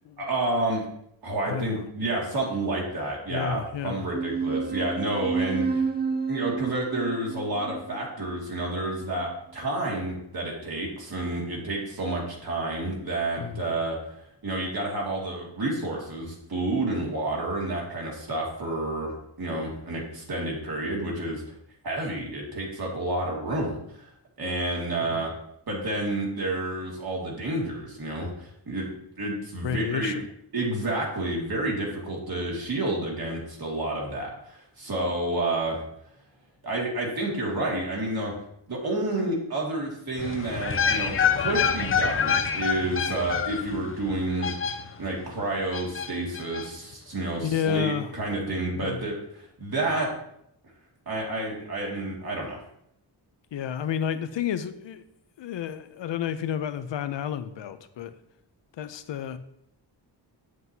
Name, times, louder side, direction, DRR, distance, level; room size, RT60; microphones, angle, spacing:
voice 1, 0.2-0.9 1.2-5.9 6.3-14.0 14.4-21.4 21.8-24.1 24.4-25.3 25.7-28.9 29.2-30.1 30.5-35.8 36.6-38.3 38.7-44.5 45.0-50.1 51.1-52.6, right 2 dB, 55° right, -2 dB, 2.2 m, -30 dB
voice 2, 1.5-1.8 3.3-4.1 13.4-13.7 25.1-25.3 29.6-30.3 47.4-48.1 48.7-49.0 53.5-55.0 55.4-58.1 58.8-59.4, left 8 dB, 90° left, 11 dB, 0.6 m, -31 dB
sound 1, 4.1-9.1, right 5 dB, 25° right, 0.5 m, -30 dB
sound 2, 40.2-45.2 45.7-46.7 46.9-47.0, left 7 dB, 30° left, 0.4 m, -27 dB
7.7 x 7.6 x 2.7 m, 0.76 s
wide cardioid pair, 140°, 43 cm